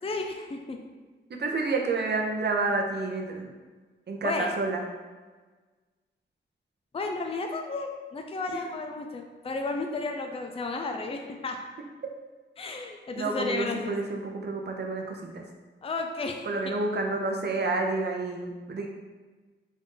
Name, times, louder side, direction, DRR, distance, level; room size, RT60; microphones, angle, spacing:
voice 1, 0.0-0.8 4.2-4.5 6.9-11.6 12.6-14.0 15.8-16.5, left 3 dB, 30° left, 3 dB, 0.4 m, -33 dB
voice 2, 1.3-3.5 4.1-4.8 8.5-8.6 13.2-15.4 16.4-18.9, right 3 dB, 55° right, 1 dB, 0.7 m, -29 dB
3.8 x 2.6 x 3.7 m, 1.3 s
cardioid pair, 70°, 20 cm